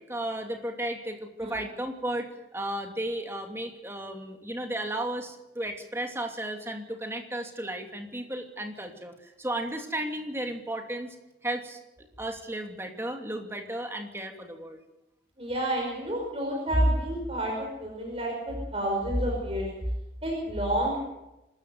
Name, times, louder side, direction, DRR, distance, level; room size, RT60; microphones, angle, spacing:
voice 1, 0.1-11.2 11.4-11.8 12.2-14.8, right 1 dB, 15° right, 4 dB, 2.6 m, -34 dB
voice 2, 15.4-19.7 20.2-21.0, right 1 dB, 30° right, -1 dB, 5.4 m, -28 dB
26.0 x 14.0 x 7.9 m, 0.96 s
head